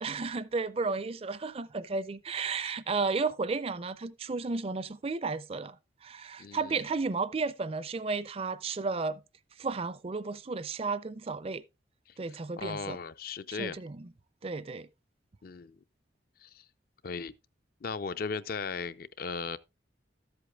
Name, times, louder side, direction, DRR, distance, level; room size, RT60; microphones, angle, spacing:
voice 1, 0.0-5.8 6.0-9.2 9.6-11.6 12.2-13.0 13.6-14.1 14.4-14.9, right 4 dB, 30° right, 0.4 m, -33 dB
voice 2, 6.4-6.8 12.1-12.2 12.6-13.8 15.4-15.8 16.4-16.6 17.0-17.3 17.8-19.6, left 5 dB, 50° left, 0.5 m, -37 dB
13.5 x 8.0 x 2.3 m
head